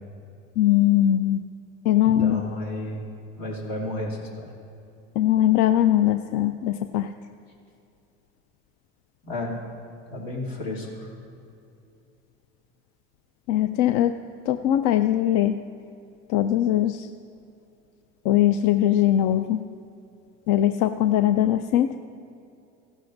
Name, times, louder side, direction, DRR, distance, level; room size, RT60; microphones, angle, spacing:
voice 1, 0.6-1.4 1.8-2.4 5.2-7.1 13.5-14.2 14.5-15.5 16.3-17.1 18.2-19.6 20.5-22.0, left 12 dB, 50° left, 10 dB, 0.4 m, -21 dB
voice 2, 2.0-3.0 3.4-4.5 9.2-9.6 10.1-11.1, left 1 dB, 85° left, -4 dB, 2.9 m, -32 dB
15.5 x 12.0 x 2.6 m, 2.6 s
hypercardioid pair, 95°, 39 cm